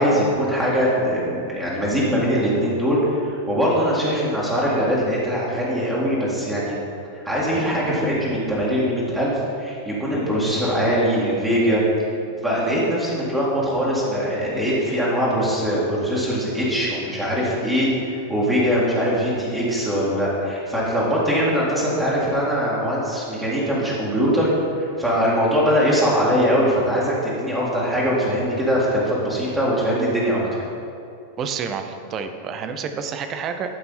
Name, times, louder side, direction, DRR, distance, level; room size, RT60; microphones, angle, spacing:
voice 1, 0.0-6.8 7.1-11.8 12.4-24.5 24.8-30.6, equal, 10° right, -7 dB, 2.2 m, -22 dB
voice 2, 31.4-33.7, right 6 dB, 30° right, 7 dB, 0.6 m, -29 dB
13.0 x 5.4 x 4.2 m, 2.6 s
figure-of-eight pair, 90°, 0 cm